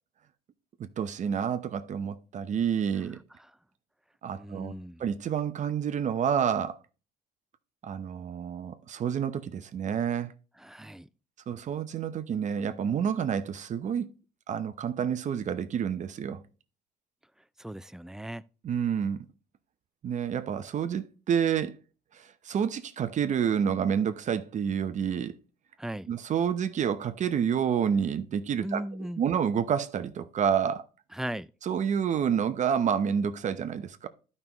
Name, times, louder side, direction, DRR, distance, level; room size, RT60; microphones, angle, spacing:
voice 1, 0.8-3.2 4.2-4.7 5.0-6.8 7.8-10.3 11.5-14.1 14.5-16.4 18.6-19.3 20.0-21.8 22.1-25.3 26.1-28.8 29.2-30.9 31.6-34.1, right 8 dB, 45° right, 0.7 m, -29 dB
voice 2, 4.3-5.0 10.6-11.1 17.6-18.4 25.8-26.1 28.6-29.2 31.1-31.5, right 1 dB, 5° right, 0.3 m, -37 dB
12.0 x 5.5 x 3.0 m
cardioid pair, 110°, 17 cm